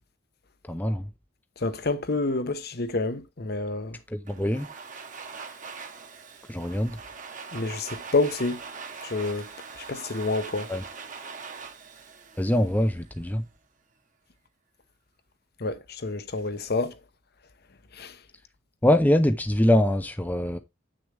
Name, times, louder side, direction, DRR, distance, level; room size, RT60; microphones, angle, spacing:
voice 1, 0.7-1.1 4.1-4.7 6.5-7.0 10.7-10.8 12.4-13.4 18.8-20.6, left 1 dB, 10° left, 0.6 m, -23 dB
voice 2, 1.6-4.0 7.5-8.6 9.0-9.5 9.8-10.7 15.6-16.9 17.9-18.2, left 3 dB, 50° left, 0.9 m, -28 dB
Domestic sounds home sounds, 4.3-13.2, right 5 dB, 40° right, 1.2 m, -42 dB
8.6 x 6.4 x 3.3 m
head